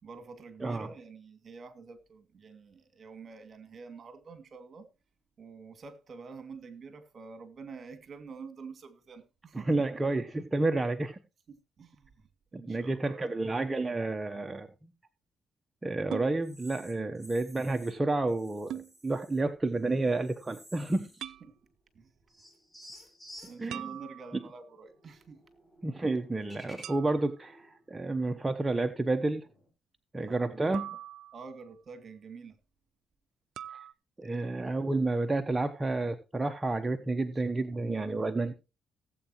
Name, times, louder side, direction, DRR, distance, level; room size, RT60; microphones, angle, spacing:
voice 1, 0.0-4.9 5.4-9.8 11.5-12.2 12.5-13.3 17.0-17.1 21.9-22.1 23.5-25.4 30.2-30.7 31.3-32.6 34.2-34.3 37.8-38.1, right 5 dB, 45° right, 2.4 m, -47 dB
voice 2, 9.7-11.2 12.5-14.7 15.8-21.3 23.6-23.9 25.8-29.5 30.1-30.9 34.2-38.5, right 2 dB, 20° right, 1.0 m, -30 dB
sound 1, 16.1-16.3 18.7-18.9 21.2-21.5 23.7-24.6 26.8-27.4 30.7-31.7 33.6-33.9, right 11 dB, 80° right, 0.5 m, -42 dB
sound 2, 16.4-17.9 18.3-19.4 19.8-21.4 21.7-21.8 22.3-29.7, equal, ahead, 5.1 m, -55 dB
18.0 x 8.2 x 3.0 m
cardioid pair, 90°, 0 cm